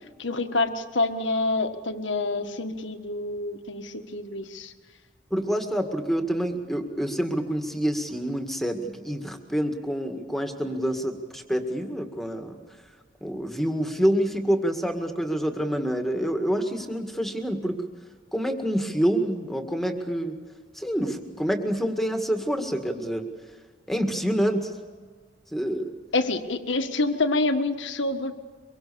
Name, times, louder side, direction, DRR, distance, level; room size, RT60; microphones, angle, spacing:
voice 1, 0.2-4.7 26.1-28.3, left 2 dB, 75° left, 7 dB, 1.7 m, -27 dB
voice 2, 5.3-12.6 13.2-17.8 18.3-20.3 20.8-23.2 23.9-24.7 25.5-25.9, equal, ahead, 5 dB, 1.9 m, -27 dB
24.5 x 23.0 x 7.0 m, 1.5 s
head